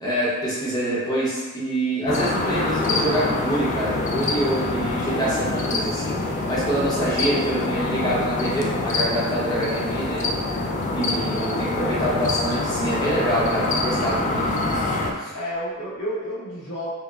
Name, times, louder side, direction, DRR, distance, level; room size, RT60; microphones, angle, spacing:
voice 1, 0.0-10.2 10.9-14.5 15.2-15.3, right 1 dB, 15° left, -7 dB, 0.9 m, -26 dB
sound 1, 2.1-15.1, left 2 dB, 35° left, 0.3 m, -25 dB
voice 2, 11.1-11.6 15.3-16.9, equal, 75° left, -8 dB, 1.2 m, -31 dB
4.7 x 2.2 x 2.4 m, 1.2 s
head